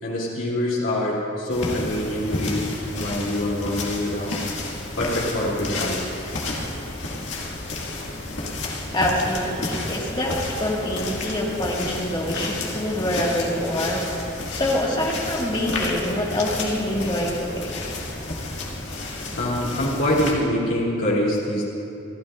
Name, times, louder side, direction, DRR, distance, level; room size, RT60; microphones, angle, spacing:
voice 1, 0.0-4.4 5.0-6.0 19.3-21.7, left 1 dB, 80° left, -7 dB, 2.9 m, -25 dB
sound 1, 1.5-20.3, left 2 dB, 65° left, 2.1 m, -31 dB
voice 2, 8.9-14.0 14.5-17.7, left 1 dB, 25° left, -3 dB, 1.9 m, -25 dB
27.0 x 13.0 x 2.5 m, 2.7 s
head